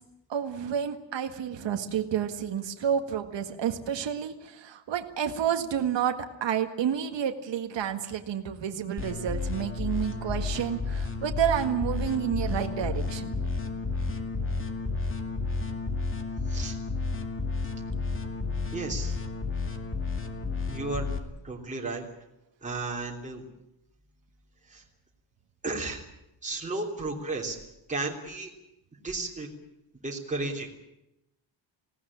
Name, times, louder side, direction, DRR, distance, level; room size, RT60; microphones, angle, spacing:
voice 1, 0.3-13.3, right 9 dB, 70° right, 5 dB, 1.8 m, -30 dB
sound 1, 9.0-21.2, left 3 dB, 25° left, 2.3 m, -32 dB
voice 2, 18.7-19.2 20.7-21.1 21.4-22.1 22.6-23.4 24.7-24.8 25.6-26.1 26.4-27.6 27.9-28.5 29.0-29.5 30.0-30.7, right 3 dB, 15° right, -1 dB, 3.4 m, -33 dB
20.0 x 17.5 x 10.0 m, 0.87 s
wide cardioid pair, 145°, 45 cm